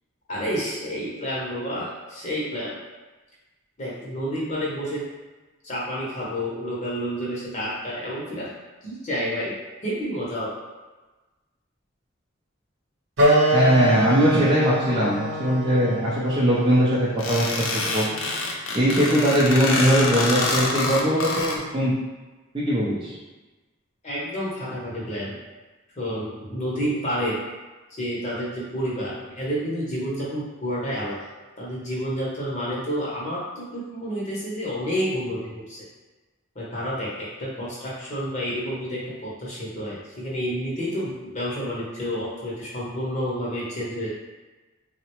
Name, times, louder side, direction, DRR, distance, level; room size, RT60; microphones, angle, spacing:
voice 1, 0.3-2.8 3.8-5.1 5.6-8.5 8.8-9.6 9.8-10.5 24.0-25.4 26.0-27.4 27.9-31.2 31.6-35.8 36.6-44.1, equal, 35° left, -6 dB, 0.7 m, -29 dB
Wind instrument woodwind instrument, 13.2-18.3, right 1 dB, 70° right, 0.8 m, -25 dB
voice 2, 13.5-18.1 18.7-22.0 22.5-23.2, equal, 25° right, -7 dB, 0.4 m, -21 dB
sound 1, 17.2-21.6, left 2 dB, 90° left, 0.5 m, -26 dB
3.7 x 2.1 x 2.9 m, 1.2 s
head